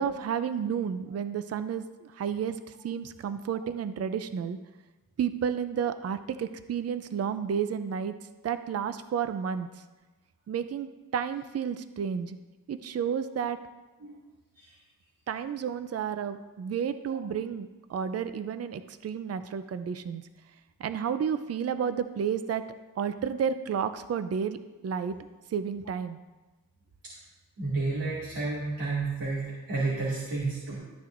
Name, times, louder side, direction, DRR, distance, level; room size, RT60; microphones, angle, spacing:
voice 1, 0.0-2.5 2.8-4.6 5.2-8.1 8.4-9.7 10.5-12.4 12.7-13.6 15.3-20.2 20.8-22.6 23.0-24.6 24.8-25.2 25.5-26.2, right 7 dB, 45° right, 11 dB, 0.5 m, -31 dB
voice 2, 27.6-30.8, right 3 dB, 65° right, -8 dB, 2.5 m, -31 dB
13.5 x 9.5 x 2.6 m, 1.2 s
wide cardioid pair, 100°, 37 cm